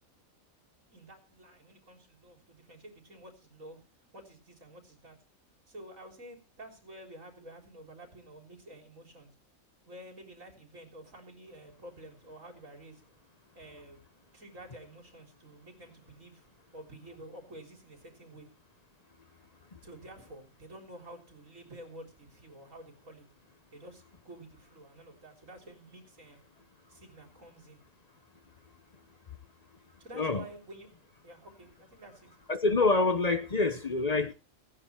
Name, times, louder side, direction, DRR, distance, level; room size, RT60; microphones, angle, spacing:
voice 1, 0.9-3.8 4.1-5.2 5.7-9.3 9.9-13.0 13.5-14.0 14.3-16.5 16.7-18.5 19.8-23.3 23.7-26.4 26.9-27.8 30.0-30.9 31.2-32.3, right 1 dB, 60° right, 3.9 m, -50 dB
voice 2, 32.5-34.3, left 3 dB, 35° left, 0.7 m, -26 dB
16.5 x 9.8 x 4.4 m
omnidirectional pair, 1.5 m